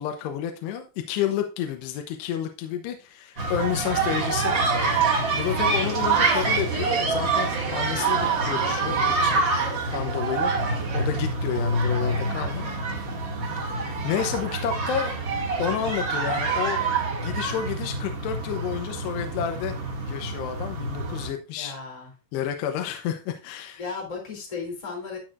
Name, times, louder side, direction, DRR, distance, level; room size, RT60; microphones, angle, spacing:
voice 1, 0.0-4.7 5.3-9.4 9.9-12.7 13.6-15.2 15.6-16.9 17.2-19.7 20.1-21.7 22.3-23.8, left 9 dB, 75° left, 5 dB, 2.6 m, -30 dB
sound 1, 3.4-21.3, right 3 dB, 40° right, 1.8 m, -26 dB
voice 2, 21.6-22.1 23.8-25.2, left 4 dB, 10° left, 0 dB, 1.9 m, -35 dB
12.0 x 6.3 x 2.5 m, 0.32 s
omnidirectional pair, 5.5 m